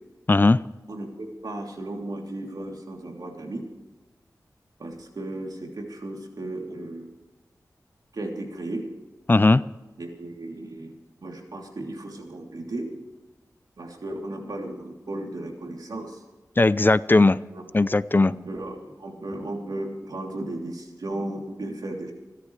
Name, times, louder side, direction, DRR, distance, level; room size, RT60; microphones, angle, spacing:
voice 1, 0.3-0.6 9.3-9.6 16.6-17.4 17.7-18.3, left 2 dB, 30° left, 17 dB, 0.4 m, -18 dB
voice 2, 0.9-3.6 4.8-7.1 8.1-8.8 10.0-11.0 11.2-12.9 13.8-16.2 17.5-17.6 18.3-22.1, right 1 dB, 80° right, 1 dB, 3.1 m, -35 dB
26.5 x 13.0 x 3.3 m, 1.1 s
wide cardioid pair, 75°, 7 cm